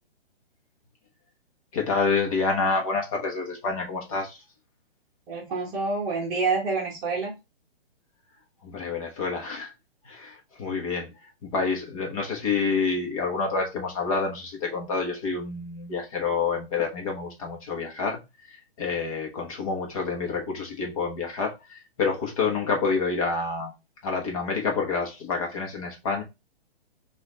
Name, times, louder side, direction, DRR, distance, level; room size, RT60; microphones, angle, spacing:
voice 1, 1.7-4.4 8.6-9.7 10.0-11.1 11.4-18.2 18.5-23.7 24.0-26.2, left 4 dB, 35° left, 1.3 m, -28 dB
voice 2, 5.3-7.3, right 4 dB, 20° right, 1.1 m, -27 dB
4.2 x 2.7 x 4.0 m
hypercardioid pair, 160°, 31 cm